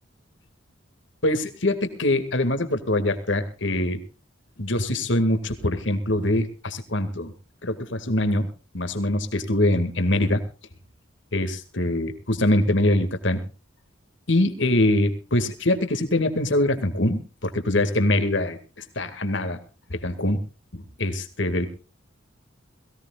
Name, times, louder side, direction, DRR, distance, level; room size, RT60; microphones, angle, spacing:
voice 1, 1.2-4.0 4.6-7.3 7.6-8.5 8.7-10.4 11.3-13.4 14.3-18.6 19.0-19.6 19.9-20.4 20.7-21.7, left 1 dB, 70° left, 9 dB, 2.2 m, -23 dB
22.0 x 16.5 x 2.4 m, 0.34 s
head